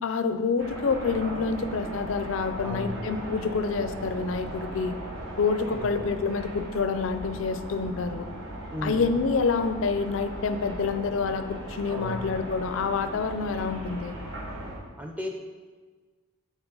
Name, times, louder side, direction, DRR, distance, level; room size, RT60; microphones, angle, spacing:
voice 1, 0.0-5.0 5.4-8.3 8.8-14.2, left 4 dB, 75° left, 9 dB, 0.4 m, -27 dB
sound 1, 0.6-14.8, right 1 dB, 85° right, 1.3 m, -38 dB
voice 2, 2.6-3.2 5.7-5.9 8.7-9.0 11.9-12.3 15.0-15.3, equal, 5° right, 2 dB, 0.5 m, -35 dB
7.0 x 4.0 x 3.9 m, 1.4 s
head